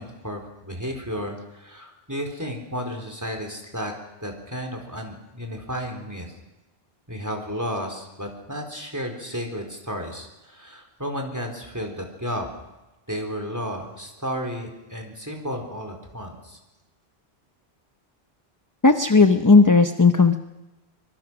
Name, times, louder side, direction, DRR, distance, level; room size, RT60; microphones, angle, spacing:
voice 1, 0.0-3.9 4.2-6.3 7.1-12.5 13.1-16.6, equal, 15° right, 3 dB, 4.1 m, -33 dB
voice 2, 18.8-20.4, left 4 dB, 20° left, 8 dB, 0.8 m, -15 dB
24.5 x 23.0 x 6.2 m, 1.0 s
omnidirectional pair, 1.0 m